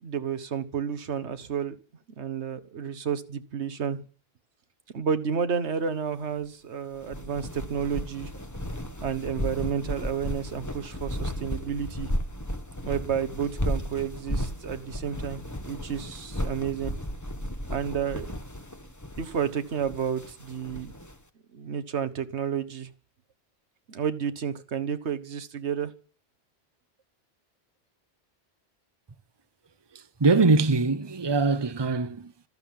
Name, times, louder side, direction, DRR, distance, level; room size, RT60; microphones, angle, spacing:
voice 1, 0.0-1.8 2.2-4.0 4.9-8.3 9.0-12.1 12.8-16.9 17.7-18.3 19.2-20.9 21.5-22.9 23.9-25.9, right 7 dB, 85° right, 1.4 m, -31 dB
sound 1, 7.0-21.1, equal, 15° left, 1.3 m, -34 dB
voice 2, 29.9-32.5, right 3 dB, 25° right, 0.9 m, -23 dB
14.0 x 13.5 x 7.5 m
omnidirectional pair, 1.1 m